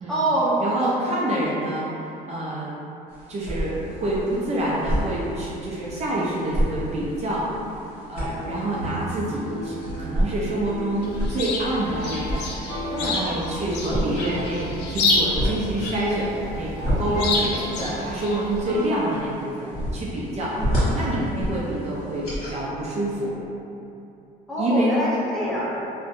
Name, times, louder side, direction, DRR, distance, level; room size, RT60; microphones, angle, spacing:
voice 1, 0.1-0.6 1.2-1.4 12.9-13.2 20.6-21.1 24.5-25.8, right 1 dB, ahead, -9 dB, 0.6 m, -26 dB
voice 2, 0.6-2.7 3.3-7.5 8.0-12.5 13.0-23.4 24.6-25.0, right 1 dB, 40° right, -6 dB, 0.4 m, -27 dB
sound 1, 3.1-22.6, equal, 70° left, 1.2 m, -30 dB
sound 2, 7.9-18.8, right 1 dB, 35° left, 1.1 m, -37 dB
Chirp tweet, 11.0-18.6, left 3 dB, 85° left, 0.4 m, -29 dB
2.6 x 2.1 x 2.5 m, 2.8 s
cardioid pair, 110°, 17 cm